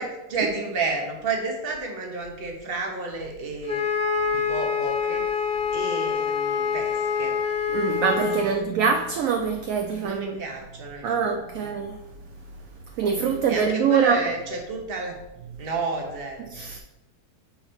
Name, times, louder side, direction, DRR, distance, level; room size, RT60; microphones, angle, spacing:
voice 1, 0.0-3.8 4.3-5.2 5.7-7.4 8.4-8.7 10.0-11.7 13.5-15.2 15.6-16.5, right 3 dB, 40° right, 1.1 m, -31 dB
Wind instrument woodwind instrument, 3.7-8.5, left 6 dB, 40° left, 1.0 m, -26 dB
voice 2, 7.7-10.4 11.0-12.0 13.0-14.2 16.5-16.8, right 6 dB, 70° right, 0.8 m, -24 dB
7.1 x 4.0 x 4.4 m
omnidirectional pair, 1.8 m